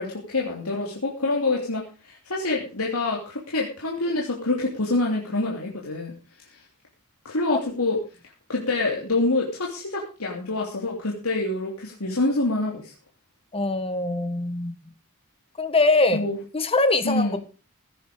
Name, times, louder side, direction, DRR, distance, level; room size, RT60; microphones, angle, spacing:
voice 1, 0.0-6.1 6.5-6.6 7.2-8.0 8.5-12.9 16.1-16.4 17.0-17.4, left 2 dB, 90° left, -2 dB, 3.1 m, -26 dB
voice 2, 13.5-14.7 15.6-16.2 16.5-17.4, left 2 dB, 25° left, 10 dB, 1.6 m, -22 dB
16.0 x 9.3 x 5.0 m, 0.35 s
head